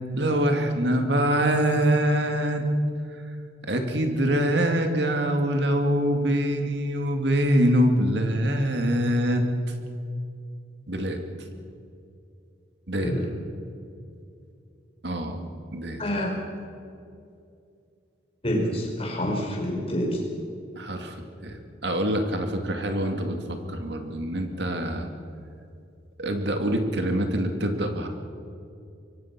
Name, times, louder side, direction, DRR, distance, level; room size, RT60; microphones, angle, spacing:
voice 1, 0.1-2.7 3.1-3.2 3.7-9.4 10.9-11.2 12.9-13.1 15.0-16.0 20.8-21.2 21.4-25.1 26.2-28.1, equal, 65° right, 5 dB, 2.4 m, -24 dB
voice 2, 16.0-16.3 18.4-20.2, equal, 30° left, -1 dB, 5.4 m, -27 dB
26.0 x 23.5 x 6.1 m, 2.5 s
head